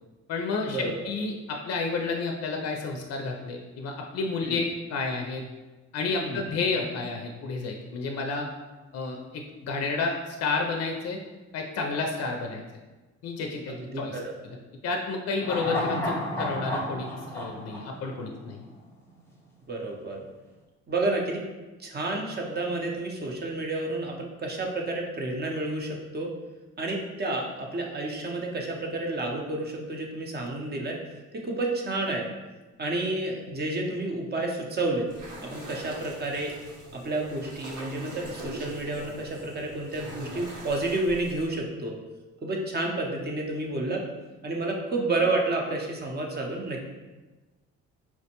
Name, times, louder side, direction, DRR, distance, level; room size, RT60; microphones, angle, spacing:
voice 1, 0.3-5.4 5.9-8.5 8.9-11.2 11.5-12.6 13.2-14.2 14.8-18.7, left 4 dB, 55° left, 2 dB, 0.4 m, -31 dB
voice 2, 13.7-14.3 19.7-20.2 20.9-21.4 21.8-26.3 26.8-31.0 31.3-32.3 32.8-35.1 35.4-36.5 36.9-42.0 42.4-44.0 44.4-46.9, right 2 dB, 35° right, 0 dB, 0.6 m, -30 dB
sound 1, 15.4-18.8 19.1-19.2, left 1 dB, 10° left, 0.7 m, -32 dB
sound 2, 35.1-41.5, right 1 dB, 75° right, 0.9 m, -42 dB
4.3 x 2.1 x 2.8 m, 1.2 s
cardioid pair, 90°, 30 cm